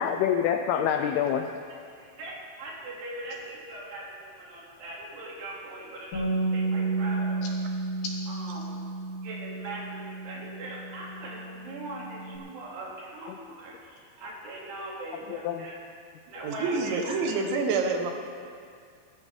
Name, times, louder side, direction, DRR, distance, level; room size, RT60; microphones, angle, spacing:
voice 1, 0.0-1.6 8.0-8.1 13.3-13.4 15.3-15.7, left 8 dB, 85° left, 6 dB, 2.2 m, -27 dB
voice 2, 1.7-7.6 8.3-8.8 9.2-15.9 16.3-17.4, right 2 dB, 70° right, -4 dB, 4.5 m, -41 dB
Bass guitar, 6.1-12.4, right 3 dB, 60° left, 4.5 m, -32 dB
voice 3, 16.4-18.1, right 4 dB, 90° right, 4 dB, 3.5 m, -27 dB
19.5 x 13.0 x 3.5 m, 2.2 s
omnidirectional pair, 5.1 m